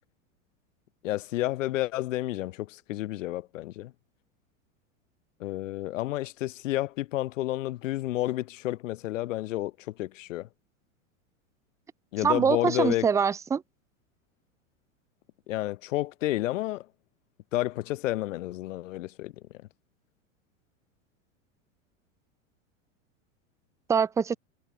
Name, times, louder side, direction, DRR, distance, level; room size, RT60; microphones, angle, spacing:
voice 1, 1.0-3.9 5.4-10.5 12.1-13.1 15.5-16.9 17.5-19.3, left 16 dB, 70° left, 1.4 m, -30 dB
voice 2, 12.2-13.6 23.9-24.3, right 6 dB, 10° right, 0.4 m, -24 dB
hypercardioid pair, 105°, 39 cm